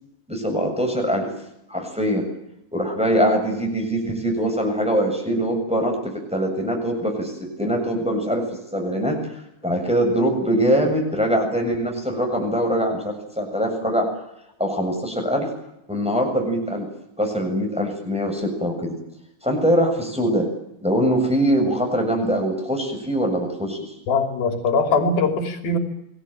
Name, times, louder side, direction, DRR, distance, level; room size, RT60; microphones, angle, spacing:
voice 1, 0.3-1.3 1.7-2.3 2.7-9.2 9.6-14.1 14.6-15.5 15.9-16.9 17.2-19.0 19.4-20.5 20.8-23.9, equal, ahead, 2 dB, 7.2 m, -23 dB
voice 2, 24.1-25.8, left 3 dB, 85° left, 6 dB, 4.9 m, -21 dB
28.0 x 20.0 x 9.1 m, 0.82 s
omnidirectional pair, 4.2 m